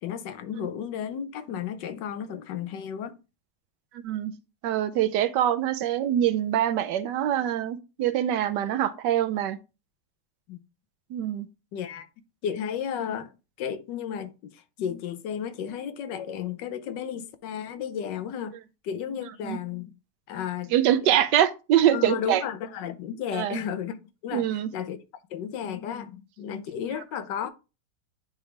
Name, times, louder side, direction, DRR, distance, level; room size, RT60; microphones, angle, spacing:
voice 1, 0.0-3.2 10.5-10.6 11.7-12.1 12.4-13.3 13.6-18.6 18.8-19.9 20.3-21.2 21.9-24.5 24.7-25.0 25.3-27.5, left 8 dB, 85° left, 1.4 m, -33 dB
voice 2, 4.6-9.6 11.1-11.5 19.4-19.6 20.7-22.4 23.3-23.6 24.3-24.7, right 11 dB, 80° right, 1.3 m, -24 dB
9.6 x 3.6 x 3.2 m
omnidirectional pair, 1.9 m